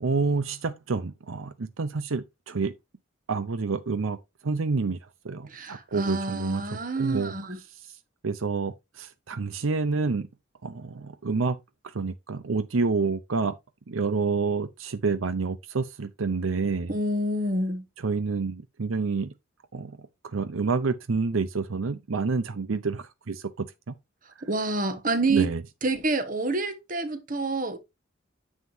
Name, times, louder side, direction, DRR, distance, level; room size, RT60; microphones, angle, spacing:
voice 1, 0.0-2.7 3.3-4.2 4.4-5.0 5.2-7.3 7.7-7.9 8.2-10.3 10.6-11.6 11.8-13.5 13.9-17.0 18.0-19.3 19.7-23.9 25.3-25.6, right 4 dB, 85° right, 0.7 m, -28 dB
voice 2, 5.5-7.6 16.9-17.8 24.4-25.5 25.8-27.8, right 2 dB, 40° right, 1.4 m, -28 dB
9.6 x 7.4 x 2.7 m
head